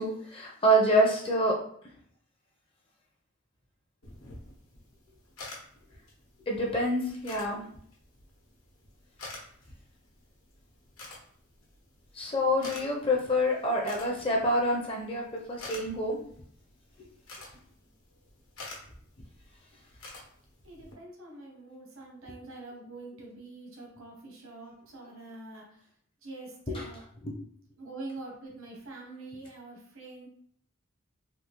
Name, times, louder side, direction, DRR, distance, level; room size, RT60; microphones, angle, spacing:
voice 1, 0.0-1.6 6.5-7.6 12.1-16.2 26.7-26.8 27.2-27.3, equal, 25° left, -1 dB, 0.5 m, -27 dB
sound 1, 4.0-20.9, left 2 dB, 90° left, 0.9 m, -49 dB
voice 2, 20.6-25.9 26.2-27.0 27.8-30.3, right 2 dB, 75° right, -1 dB, 0.9 m, -45 dB
3.5 x 2.3 x 2.9 m, 0.62 s
head